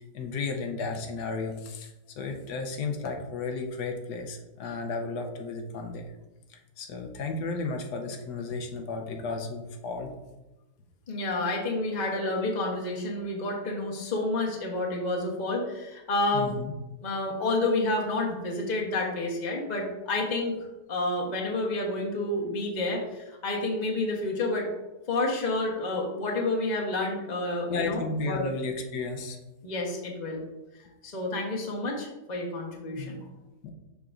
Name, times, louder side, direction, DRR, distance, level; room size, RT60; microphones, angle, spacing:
voice 1, 0.0-6.1 6.8-10.1 16.3-16.7 27.7-29.4 33.0-33.1 33.6-33.7, left 3 dB, 85° left, 3 dB, 1.3 m, -33 dB
voice 2, 11.1-16.5 17.0-20.5 20.9-24.7 25.1-28.4 29.6-30.4 31.0-33.2, left 2 dB, 30° left, -1 dB, 1.1 m, -29 dB
6.7 x 5.9 x 2.5 m, 1.0 s
omnidirectional pair, 1.7 m